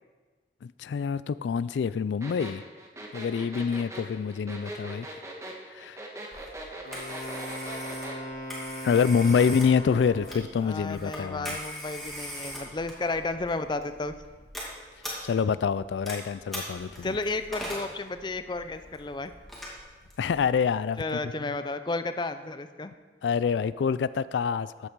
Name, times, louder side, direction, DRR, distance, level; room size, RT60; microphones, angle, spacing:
voice 1, 0.6-2.6 3.1-5.1 5.7-6.0 8.8-11.6 15.2-17.2 20.2-21.0 21.4-21.5 23.2-24.9, left 6 dB, 85° left, 16 dB, 0.3 m, -26 dB
sound 1, 2.2-8.2, right 1 dB, 15° right, 1.4 m, -40 dB
Telephone, 6.3-20.6, equal, ahead, 2.4 m, -42 dB
Wind instrument woodwind instrument, 6.8-10.6, equal, 65° left, 1.5 m, -39 dB
voice 2, 10.6-14.1 17.0-19.3 21.0-22.9, left 3 dB, 25° left, 10 dB, 0.5 m, -32 dB
14.0 x 8.7 x 4.6 m, 1.4 s
head